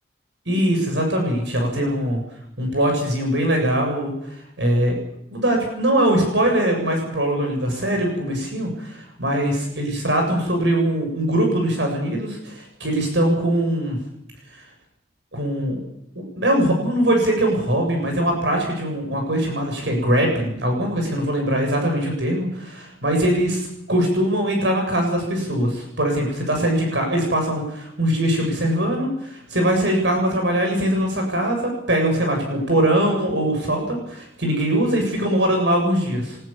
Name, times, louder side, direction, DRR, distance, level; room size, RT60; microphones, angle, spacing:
voice 1, 0.5-2.2 2.6-4.1 4.6-5.0 5.3-14.0 15.3-15.8 16.4-36.4, right 1 dB, 65° right, 2 dB, 7.4 m, -21 dB
23.5 x 21.0 x 7.3 m, 0.79 s
head